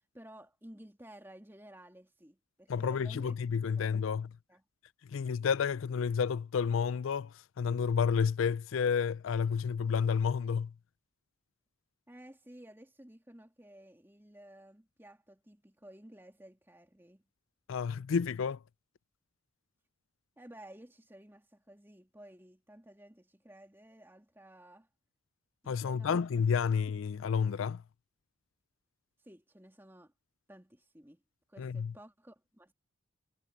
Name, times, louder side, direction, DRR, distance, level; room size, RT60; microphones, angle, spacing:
voice 1, 0.1-3.4 3.7-4.2 4.5-4.6 12.1-17.2 20.4-24.9 25.6-26.3 29.2-30.1 30.5-31.2 31.5-32.7, right 1 dB, 10° right, 2.8 m, -54 dB
voice 2, 2.7-4.3 5.1-10.7 17.7-18.6 25.7-27.8 31.6-31.9, left 6 dB, 85° left, 0.4 m, -30 dB
head